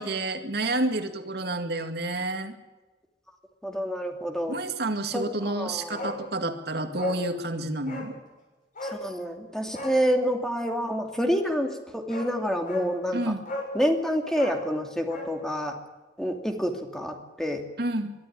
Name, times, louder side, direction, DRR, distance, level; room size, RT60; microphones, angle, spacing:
voice 1, 0.0-2.5 4.5-8.2 13.1-13.4 17.8-18.1, right 2 dB, 65° right, 7 dB, 2.1 m, -29 dB
voice 2, 3.6-4.6 5.1-6.1 8.8-13.2 13.7-15.8 16.2-17.6, equal, 5° left, 4 dB, 2.6 m, -28 dB
Bark, 5.9-6.2 6.5-6.6 6.9-7.2 7.8-8.1 8.7-9.0 9.7-10.0 11.6-11.7 12.1-12.3 12.6-12.9 13.4-13.7 14.3-15.3 15.6-15.7, left 1 dB, 50° left, 7.0 m, -35 dB
23.5 x 12.5 x 10.0 m, 1.2 s
head